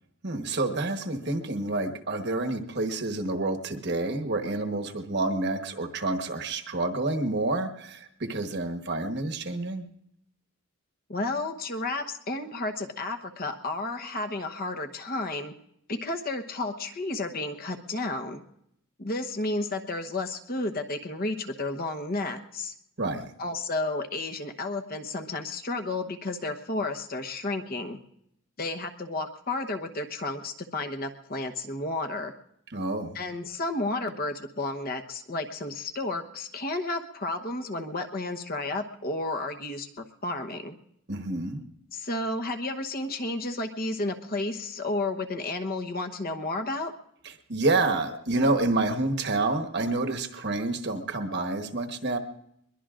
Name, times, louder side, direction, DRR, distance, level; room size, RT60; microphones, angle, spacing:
voice 1, 0.2-9.8 23.0-23.3 32.7-33.2 41.1-41.6 47.5-52.2, right 2 dB, 50° right, 5 dB, 1.2 m, -28 dB
voice 2, 11.1-15.5 15.9-18.4 19.0-22.7 23.4-28.0 28.6-32.3 33.1-40.8 41.9-46.9, left 2 dB, 40° left, 7 dB, 1.0 m, -32 dB
22.0 x 22.0 x 2.5 m, 0.76 s
head